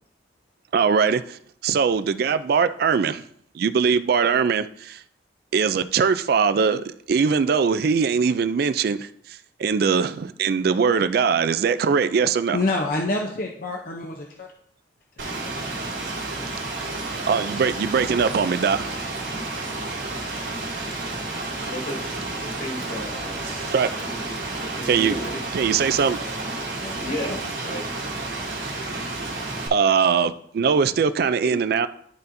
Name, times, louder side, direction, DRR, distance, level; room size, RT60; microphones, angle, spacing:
voice 1, 0.7-3.2 3.5-5.0 5.5-12.6 17.3-18.9 23.7-23.9 24.9-25.2 25.5-26.2 29.7-31.9, right 6 dB, 55° right, 12 dB, 0.3 m, -21 dB
voice 2, 12.5-14.5 26.8-27.4, left 2 dB, 50° left, 1 dB, 0.6 m, -27 dB
Rain, 15.2-29.7, right 2 dB, 85° right, 1.8 m, -31 dB
voice 3, 21.6-23.4 24.1-25.3 27.0-27.8 31.4-31.6, left 1 dB, 80° left, -3 dB, 2.8 m, -34 dB
11.5 x 4.2 x 2.6 m, 0.66 s
head